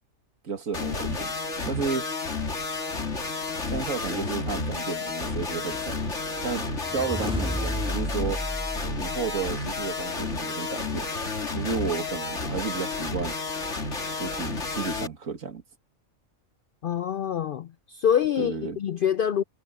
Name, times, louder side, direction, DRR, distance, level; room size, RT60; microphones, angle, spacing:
voice 1, 0.4-1.3 1.7-2.1 3.6-6.0 6.4-6.7 6.9-8.4 9.0-11.1 11.5-13.3 14.1-15.6 18.4-18.8, right 5 dB, 65° right, 2.5 m, -32 dB
sound 1, 0.7-15.1, left 3 dB, 55° left, 2.7 m, -31 dB
sound 2, 6.6-9.9, equal, 5° right, 2.1 m, -33 dB
voice 2, 16.8-19.4, left 9 dB, 85° left, 0.4 m, -25 dB
omnidirectional pair, 1.5 m